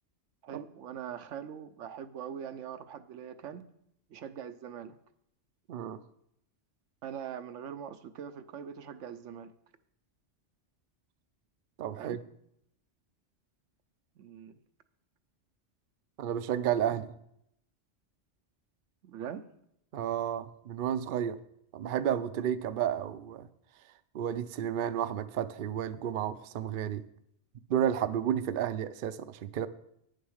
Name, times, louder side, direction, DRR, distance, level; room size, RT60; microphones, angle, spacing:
voice 1, 0.4-3.6 4.1-5.0 7.0-9.5 11.9-12.2 14.2-14.5 19.0-19.4, right 8 dB, 80° right, 10 dB, 1.0 m, -42 dB
voice 2, 5.7-6.0 11.8-12.2 16.2-17.1 19.9-21.4 21.7-23.5 24.1-27.0 27.7-29.7, right 9 dB, 60° right, 11 dB, 0.6 m, -31 dB
9.3 x 6.6 x 6.4 m, 0.75 s
omnidirectional pair, 1.3 m